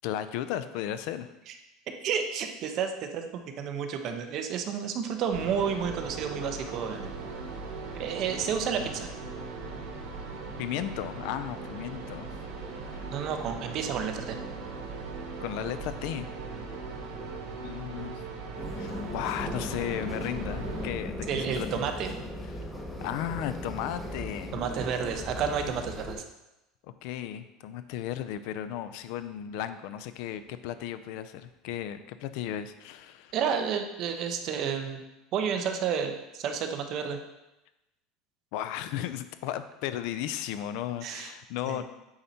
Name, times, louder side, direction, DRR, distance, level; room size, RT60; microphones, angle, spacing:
voice 1, 0.0-1.3 10.6-12.3 12.9-13.0 15.4-16.3 17.6-18.2 18.8-21.7 22.5-22.6 23.0-24.6 26.8-33.3 38.5-41.8, left 11 dB, 65° left, 12 dB, 0.5 m, -35 dB
voice 2, 2.0-7.1 7.9-9.1 13.1-14.4 21.3-22.1 24.5-26.2 33.3-35.0 35.3-37.2 41.0-41.3 41.6-41.8, right 7 dB, 45° right, 6 dB, 0.9 m, -31 dB
sound 1, 5.3-20.8, right 4 dB, 85° right, 1.8 m, -39 dB
sound 2, 18.6-26.2, left 1 dB, 5° left, 1.0 m, -37 dB
8.7 x 4.2 x 4.3 m, 0.96 s
supercardioid pair, 140°, 0 cm